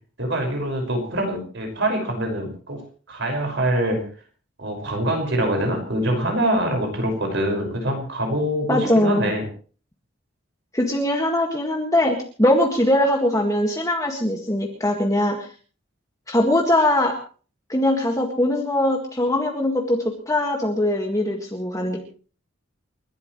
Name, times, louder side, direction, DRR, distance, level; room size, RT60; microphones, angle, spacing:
voice 1, 0.2-2.8 3.1-4.0 4.6-9.5, right 1 dB, 60° right, 3 dB, 5.7 m, -24 dB
voice 2, 8.7-9.3 10.7-15.5 16.3-17.1 17.7-20.0 20.3-22.0, left 1 dB, 15° left, 1 dB, 1.9 m, -21 dB
29.5 x 12.5 x 3.2 m, 0.40 s
head